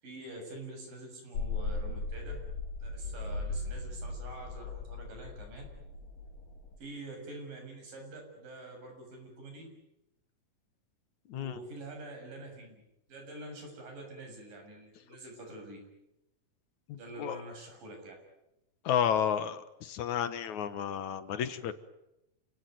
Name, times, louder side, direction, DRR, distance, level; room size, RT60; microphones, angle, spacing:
voice 1, 0.0-2.4 2.8-5.7 6.8-9.7 11.3-12.8 13.1-15.8 17.0-18.2, right 2 dB, 85° right, 3 dB, 8.7 m, -46 dB
sound 1, 1.3-6.7, left 3 dB, 80° left, 4.7 m, -38 dB
voice 2, 16.9-17.4 18.9-21.7, left 9 dB, 65° left, 12 dB, 2.6 m, -31 dB
29.0 x 18.0 x 9.4 m, 0.89 s
omnidirectional pair, 3.8 m